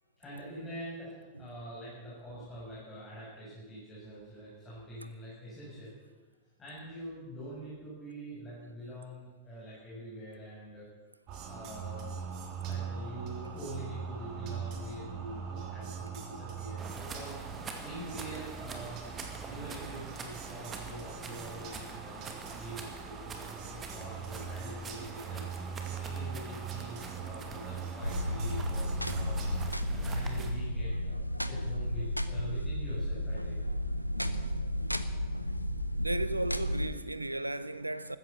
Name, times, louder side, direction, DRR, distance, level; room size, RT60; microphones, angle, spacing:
voice 1, 0.2-6.0 6.6-10.9 11.5-12.1 12.6-17.4 17.8-25.5 25.9-29.4 29.9-33.6, equal, 15° left, 6.9 m, -45 dB
sound 1, 11.3-29.7, right 6 dB, 40° right, 3.0 m, -41 dB
sound 2, 16.8-30.5, right 4 dB, 25° right, 2.2 m, -46 dB
sound 3, 28.0-36.9, equal, 90° left, 0.7 m, -33 dB
voice 2, 33.9-38.2, right 2 dB, 85° right, 0.7 m, -37 dB
15.0 x 13.5 x 6.9 m
figure-of-eight pair, 90°, 0 cm